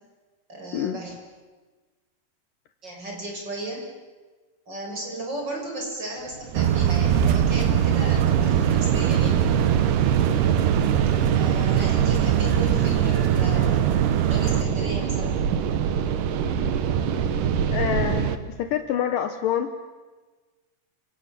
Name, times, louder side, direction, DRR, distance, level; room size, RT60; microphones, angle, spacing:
voice 1, 0.5-1.2 2.8-3.8 4.7-9.3 11.3-14.0 14.3-15.4, right 1 dB, 25° right, 0 dB, 7.1 m, -35 dB
sound 1, 6.3-18.4, right 8 dB, 65° right, 2.8 m, -26 dB
sound 2, 6.5-14.6, right 10 dB, 80° right, 3.5 m, -22 dB
voice 2, 17.7-19.8, left 9 dB, 70° left, 8 dB, 2.6 m, -26 dB
29.5 x 26.5 x 7.6 m, 1.3 s
omnidirectional pair, 4.4 m